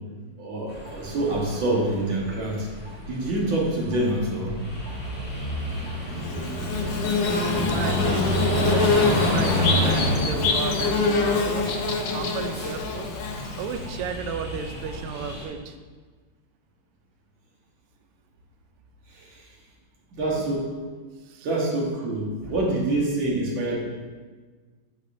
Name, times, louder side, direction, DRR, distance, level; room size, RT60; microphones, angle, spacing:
voice 1, 0.4-2.7 3.1-4.7 19.1-19.4 20.1-20.7 21.4-23.8, right 1 dB, 65° right, -3 dB, 1.9 m, -26 dB
sound 1, 0.7-15.5, left 1 dB, 5° left, 1.4 m, -29 dB
Bird / Buzz, 6.2-13.9, left 4 dB, 70° left, 1.2 m, -26 dB
voice 2, 7.1-8.3 8.6-15.8 21.3-21.5, right 7 dB, 85° right, 7 dB, 1.5 m, -33 dB
8.6 x 5.1 x 2.6 m, 1.4 s
omnidirectional pair, 2.4 m